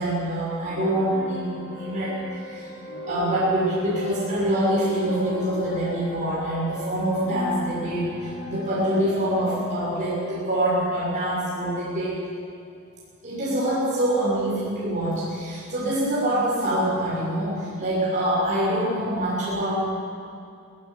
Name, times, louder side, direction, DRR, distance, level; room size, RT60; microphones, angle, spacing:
voice 1, 0.0-2.7 3.1-12.2 13.2-19.7, right 1 dB, 35° right, -7 dB, 6.5 m, -25 dB
sound 1, 0.6-11.9, equal, 50° left, 3.7 m, -38 dB
18.0 x 17.5 x 9.7 m, 2.4 s
head